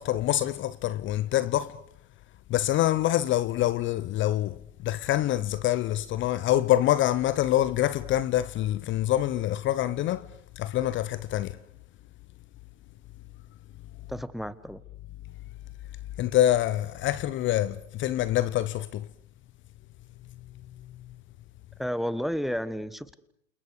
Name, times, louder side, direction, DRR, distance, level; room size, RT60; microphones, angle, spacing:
voice 1, 0.0-1.8 2.5-11.6 16.2-19.1, left 13 dB, 30° left, 1.0 m, -26 dB
voice 2, 14.1-14.8 21.8-23.1, equal, ahead, 1.4 m, -31 dB
29.0 x 28.5 x 4.9 m
hypercardioid pair, 105°, 40 cm